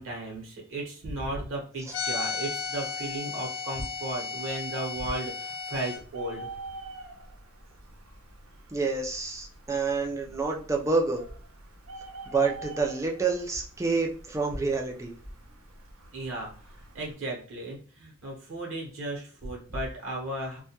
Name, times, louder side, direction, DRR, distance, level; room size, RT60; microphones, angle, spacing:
voice 1, 0.0-6.5 16.1-16.5 16.9-20.6, right 1 dB, 60° right, -2 dB, 0.9 m, -35 dB
sound 1, 1.9-6.0, left 5 dB, 55° left, 0.5 m, -34 dB
Bird, 6.0-17.1, right 2 dB, 85° right, 0.6 m, -46 dB
voice 2, 8.7-11.2 12.3-15.2, right 4 dB, 15° right, 1 dB, 0.4 m, -28 dB
2.2 x 2.2 x 2.8 m, 0.42 s
head